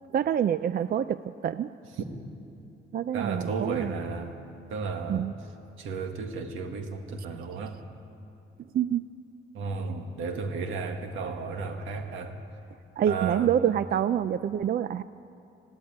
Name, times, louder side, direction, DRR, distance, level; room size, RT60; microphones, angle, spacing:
voice 1, 0.1-1.7 2.9-3.9 5.1-5.3 8.7-9.0 13.0-15.0, right 9 dB, 50° right, 14 dB, 0.5 m, -26 dB
voice 2, 3.1-4.4 4.7-5.3 5.8-7.7 9.5-12.3 13.1-13.5, right 4 dB, 85° right, 5 dB, 1.8 m, -33 dB
20.5 x 15.5 x 9.5 m, 2.7 s
cardioid pair, 90°, 20 cm